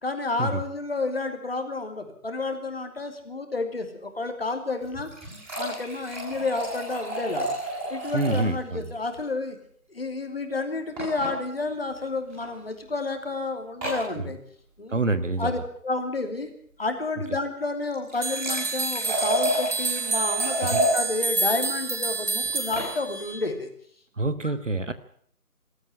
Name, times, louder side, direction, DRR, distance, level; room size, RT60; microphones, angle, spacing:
voice 1, 0.0-5.1 5.6-7.5 7.9-9.6 9.9-14.4 14.8-15.0 15.4-16.5 16.8-23.7, left 3 dB, 40° left, 6 dB, 2.9 m, -30 dB
sound 1, 4.8-8.5 8.8-8.9 9.2-9.3 11.0-11.3 12.3-12.5 13.8-14.1 17.8-21.0 22.4-22.9, equal, 5° right, 7.7 m, -30 dB
voice 2, 8.1-8.8 14.2-14.3 14.9-15.5 20.6-20.8 24.2-24.9, right 2 dB, 55° right, 13 dB, 1.5 m, -26 dB
sound 2, 18.2-23.4, right 3 dB, 80° right, 2.4 m, -28 dB
20.0 x 13.5 x 9.7 m, 0.62 s
figure-of-eight pair, 165°, 44 cm